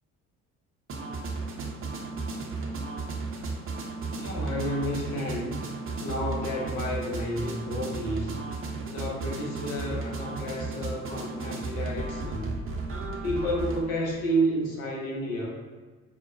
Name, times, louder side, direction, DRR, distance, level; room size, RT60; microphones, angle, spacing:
sound 1, 0.9-13.8, right 3 dB, 35° right, 0.7 m, -34 dB
voice 1, 4.1-5.6 6.0-8.4 8.9-12.6 13.2-15.5, equal, 65° left, -3 dB, 0.9 m, -31 dB
4.7 x 2.1 x 2.6 m, 1.4 s
hypercardioid pair, 45°, 39 cm